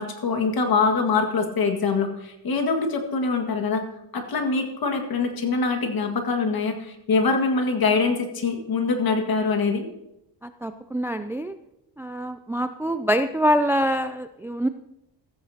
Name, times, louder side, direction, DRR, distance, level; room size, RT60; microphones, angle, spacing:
voice 1, 0.0-3.8 4.1-9.9, left 4 dB, 50° left, 4 dB, 1.9 m, -24 dB
voice 2, 10.4-11.5 12.0-14.7, equal, 5° right, 10 dB, 0.3 m, -25 dB
14.5 x 14.5 x 2.9 m, 0.85 s
cardioid pair, 120°, 45 cm